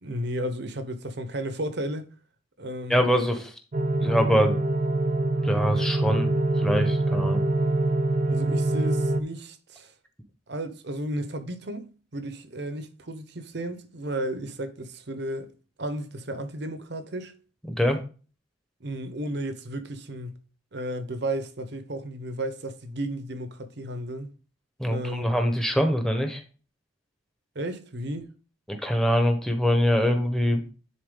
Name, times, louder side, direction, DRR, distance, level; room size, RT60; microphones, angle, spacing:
voice 1, 0.0-2.1 2.6-3.2 8.3-9.9 10.5-15.5 15.8-17.3 18.8-20.4 20.7-24.3 24.9-25.3 27.5-28.3, right 1 dB, 55° right, 0.9 m, -33 dB
voice 2, 2.9-3.5 4.0-4.5 5.4-7.4 17.7-18.0 24.8-26.4 28.7-30.6, equal, ahead, 1.1 m, -24 dB
sound 1, 3.7-9.2, right 2 dB, 35° right, 0.5 m, -24 dB
10.0 x 4.4 x 3.8 m
head